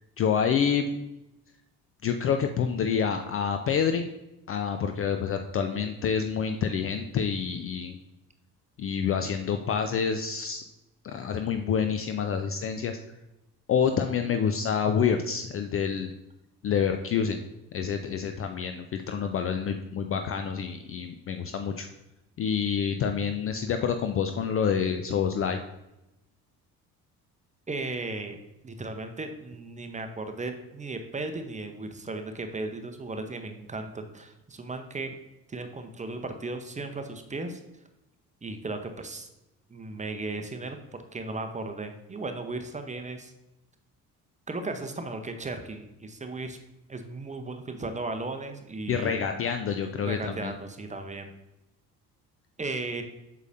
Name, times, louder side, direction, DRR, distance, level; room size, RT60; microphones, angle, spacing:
voice 1, 0.2-0.9 2.0-4.1 4.5-8.0 8.8-10.6 11.0-13.0 13.7-16.1 16.6-17.4 17.7-21.9 22.4-25.6 48.9-50.5, left 7 dB, 30° left, 7 dB, 0.4 m, -27 dB
voice 2, 27.7-28.4 28.6-35.2 35.5-37.6 38.4-39.3 39.7-40.8 41.1-43.3 44.5-46.6 46.9-49.2 50.1-51.3 52.6-53.0, right 3 dB, 15° right, 6 dB, 0.8 m, -36 dB
8.0 x 5.7 x 2.6 m, 0.92 s
figure-of-eight pair, 50°, 46 cm